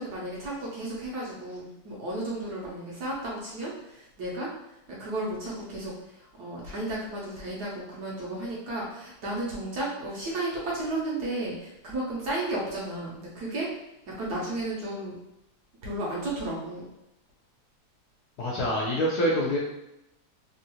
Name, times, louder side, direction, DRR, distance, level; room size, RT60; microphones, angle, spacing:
voice 1, 0.0-4.5 4.9-13.7 14.2-15.1 15.8-16.9, right 1 dB, 65° right, -4 dB, 1.1 m, -33 dB
voice 2, 18.4-19.6, equal, 70° left, -4 dB, 1.0 m, -25 dB
3.6 x 2.4 x 2.7 m, 0.88 s
omnidirectional pair, 2.2 m